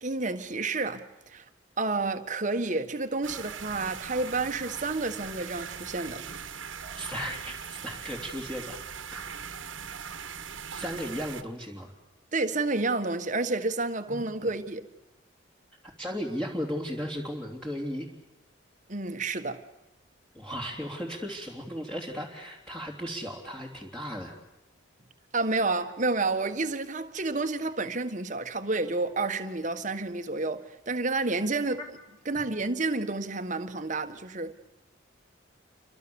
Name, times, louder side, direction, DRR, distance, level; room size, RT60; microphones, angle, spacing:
voice 1, 0.0-1.4 1.8-6.2 12.3-14.9 18.9-19.6 25.3-31.8 32.2-34.5, right 3 dB, 40° right, 1.5 m, -30 dB
sound 1, 3.2-11.4, right 6 dB, 75° right, 1.7 m, -40 dB
voice 2, 7.0-8.8 9.1-9.4 10.7-11.9 14.1-14.2 16.0-18.1 20.3-24.3 31.8-31.9, equal, 5° left, 3.2 m, -35 dB
29.0 x 24.5 x 7.2 m
head